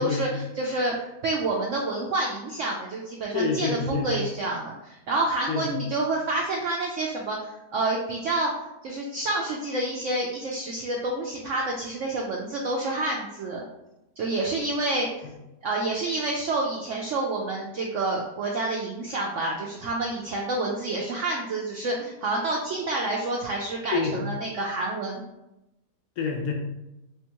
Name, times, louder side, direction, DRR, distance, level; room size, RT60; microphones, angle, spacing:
voice 1, 0.0-8.5 8.8-13.6 14.2-15.2 15.6-25.2, right 2 dB, 80° right, -1 dB, 0.7 m, -28 dB
voice 2, 3.3-4.1 5.5-5.7 23.9-24.2 26.2-26.5, left 4 dB, 70° left, 1 dB, 1.0 m, -27 dB
3.5 x 3.4 x 2.9 m, 0.92 s
omnidirectional pair, 1.8 m